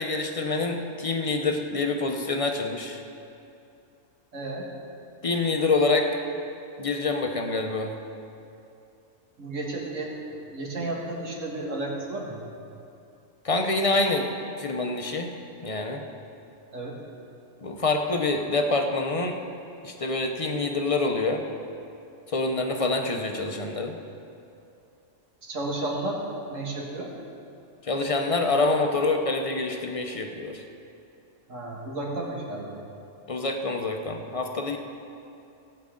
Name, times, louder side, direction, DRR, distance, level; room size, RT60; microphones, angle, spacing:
voice 1, 0.0-3.0 5.2-6.1 6.8-7.9 13.4-14.3 14.6-15.3 15.6-16.0 17.6-19.4 19.8-21.4 22.3-24.0 27.9-30.6 33.3-34.8, left 3 dB, 30° left, 3 dB, 0.7 m, -26 dB
voice 2, 4.3-4.7 9.4-12.5 16.7-17.0 25.4-26.2 26.5-27.1 31.5-32.8, right 2 dB, 75° right, -2 dB, 2.1 m, -33 dB
18.0 x 8.7 x 3.8 m, 2.6 s
omnidirectional pair, 1.3 m